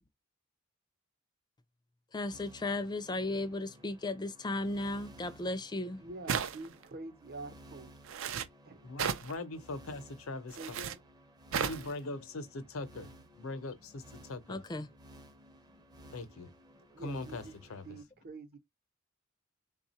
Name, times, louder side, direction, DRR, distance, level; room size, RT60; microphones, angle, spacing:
voice 1, 2.1-6.0 14.5-14.9, left 2 dB, 20° left, 0.4 m, -35 dB
sound 1, 2.3-18.0, equal, 20° right, 0.6 m, -57 dB
voice 2, 6.0-8.0 8.6-8.8 10.6-11.0 16.9-17.5 17.8-18.6, right 2 dB, 50° right, 0.8 m, -46 dB
sound 2, 6.3-6.8 8.0-8.5 9.0-9.3 10.5-11.0 11.5-11.9, right 7 dB, 70° right, 0.5 m, -34 dB
voice 3, 8.8-10.8 11.5-14.6 16.1-16.5 17.0-17.4 17.7-17.9, left 2 dB, 90° left, 0.7 m, -41 dB
3.4 x 2.4 x 4.1 m
head